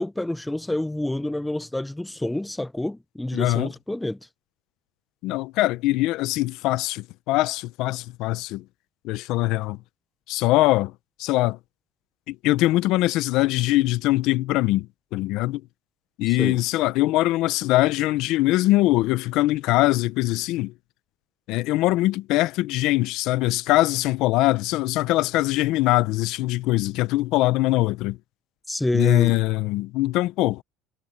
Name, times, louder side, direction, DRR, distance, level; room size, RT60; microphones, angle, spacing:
voice 1, 0.0-4.2 16.3-16.6 28.7-29.3, left 1 dB, 5° left, 0.4 m, -28 dB
voice 2, 3.3-3.7 5.2-8.6 9.0-9.8 10.3-10.9 11.2-11.6 12.3-14.9 15.1-15.6 16.2-20.7 21.5-28.2 28.9-30.6, left 17 dB, 55° left, 0.7 m, -22 dB
cardioid pair, 165°, 0 cm